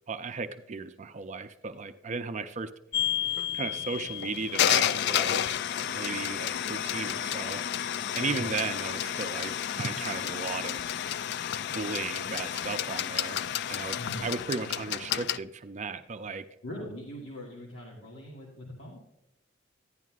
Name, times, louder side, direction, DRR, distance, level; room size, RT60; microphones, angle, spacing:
voice 1, 0.1-2.7 3.5-7.6 8.1-10.9 11.7-13.4 13.7-16.5, right 4 dB, 40° right, 9 dB, 0.4 m, -36 dB
sound 1, 2.9-15.4, left 10 dB, 60° left, 0.3 m, -31 dB
voice 2, 13.9-14.2 16.6-19.0, left 1 dB, 75° left, -4 dB, 1.9 m, -41 dB
11.0 x 11.0 x 2.4 m, 0.88 s
head